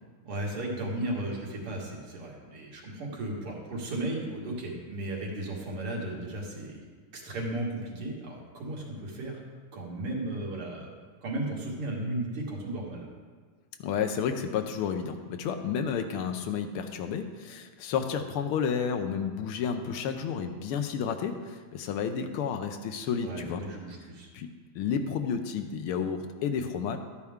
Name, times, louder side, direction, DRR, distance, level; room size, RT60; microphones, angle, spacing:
voice 1, 0.2-6.8 7.1-9.4 9.7-10.9 11.2-13.1 23.2-24.3, right 1 dB, 85° right, -3 dB, 2.8 m, -35 dB
voice 2, 13.8-23.6 24.3-24.5 24.7-27.0, left 7 dB, 80° left, 7 dB, 1.6 m, -31 dB
12.0 x 9.2 x 3.6 m, 1.5 s
omnidirectional pair, 2.4 m